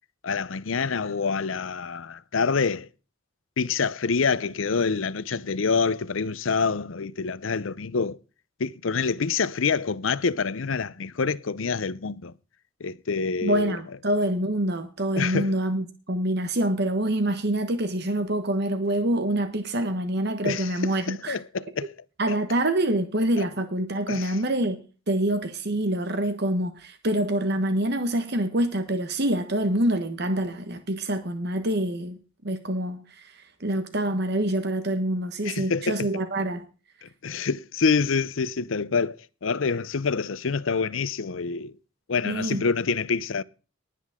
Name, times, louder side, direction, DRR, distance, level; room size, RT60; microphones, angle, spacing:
voice 1, 0.2-2.9 3.6-8.2 8.6-12.3 12.8-13.8 15.1-15.5 20.4-20.7 21.1-21.9 22.3-22.4 24.1-24.4 35.4-36.1 37.0-41.8 42.1-43.4, left 5 dB, 70° left, 0.7 m, -26 dB
voice 2, 13.4-21.4 22.2-24.8 25.1-32.2 32.4-36.6 42.2-42.6, right 1 dB, 55° right, 1.3 m, -26 dB
19.0 x 9.2 x 3.7 m
head